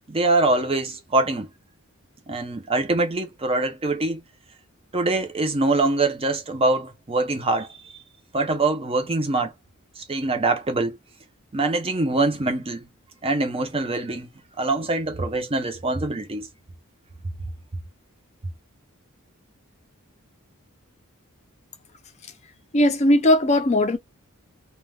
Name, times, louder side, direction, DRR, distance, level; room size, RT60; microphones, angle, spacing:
voice 1, 0.0-1.5 2.3-4.2 4.9-7.7 8.3-9.5 10.0-11.0 11.5-12.9 13.2-14.3 14.6-16.5, right 2 dB, 25° right, 0.6 m, -24 dB
voice 2, 22.7-24.0, left 1 dB, 30° left, 0.6 m, -18 dB
2.3 x 2.2 x 3.3 m
head